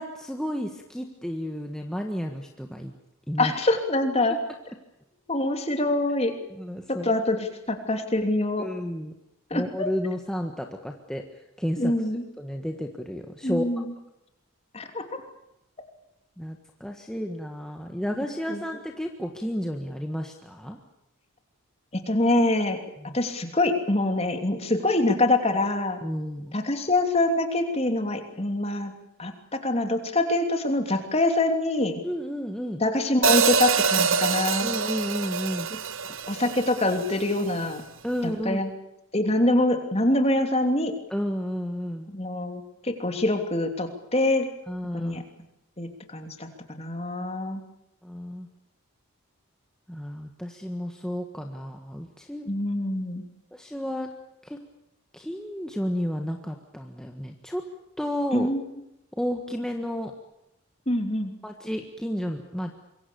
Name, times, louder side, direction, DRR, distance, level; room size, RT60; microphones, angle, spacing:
voice 1, 0.0-2.9 3.3-3.5 6.6-7.1 8.6-9.1 9.5-11.2 11.6-11.9 12.4-13.7 16.4-20.8 23.0-23.2 26.0-26.6 32.0-32.8 34.6-35.7 38.0-38.6 41.1-42.1 44.7-45.2 48.0-48.5 49.9-52.5 53.5-54.1 54.4-54.6 55.1-57.6 58.0-58.5 59.2-60.1 61.4-62.7, equal, 5° left, 3 dB, 1.6 m, -32 dB
voice 2, 3.4-4.4 5.3-6.3 7.0-8.7 9.5-9.9 11.8-12.2 13.4-13.9 14.7-15.0 18.5-18.6 21.9-22.8 23.1-26.0 26.5-28.9 29.2-32.0 32.8-34.7 36.0-37.8 38.4-38.7 39.1-40.9 42.1-44.5 44.9-45.2 45.8-46.5 46.8-47.6 52.5-53.2 58.3-58.6 60.9-61.3, left 2 dB, 30° left, 5 dB, 3.0 m, -25 dB
Hi-hat, 33.2-37.4, right 6 dB, 60° right, 1.1 m, -25 dB
26.0 x 23.0 x 7.1 m, 0.88 s
head